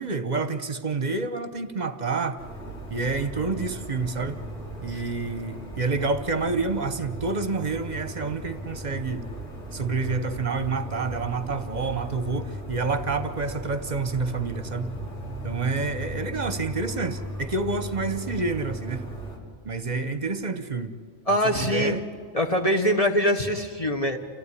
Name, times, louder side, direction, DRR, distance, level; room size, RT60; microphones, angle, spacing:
voice 1, 0.0-2.4 2.9-4.4 4.8-9.2 9.7-14.9 15.4-19.0 19.6-20.9 21.3-22.1, right 4 dB, 40° right, 1.0 m, -28 dB
sound 1, 2.4-19.4, right 1 dB, 75° left, 3.8 m, -37 dB
voice 2, 21.3-22.0 22.3-24.2, equal, 30° left, 1.3 m, -23 dB
28.0 x 16.0 x 9.8 m
omnidirectional pair, 1.2 m